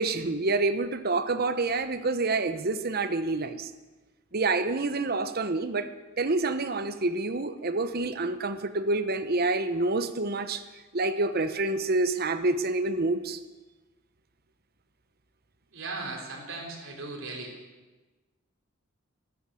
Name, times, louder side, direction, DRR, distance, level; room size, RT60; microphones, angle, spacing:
voice 1, 0.0-3.7 4.3-5.9 6.2-10.6 10.9-13.4, right 3 dB, 50° right, 10 dB, 1.0 m, -27 dB
voice 2, 15.7-17.5, right 3 dB, 70° right, 0 dB, 4.0 m, -37 dB
13.5 x 13.5 x 7.7 m, 1.2 s
head